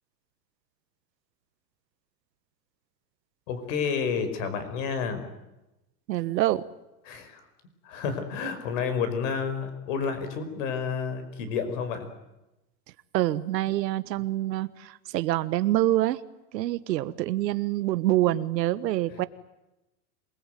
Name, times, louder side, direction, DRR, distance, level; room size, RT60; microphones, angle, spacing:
voice 1, 3.5-5.3 7.0-7.5 7.8-12.1 19.1-19.2, left 6 dB, 50° left, 10 dB, 5.2 m, -30 dB
voice 2, 6.1-6.6 13.1-14.7 15.1-16.2 16.5-19.3, right 15 dB, 80° right, 14 dB, 1.5 m, -25 dB
27.0 x 21.0 x 9.3 m, 0.96 s
supercardioid pair, 170°, 49 cm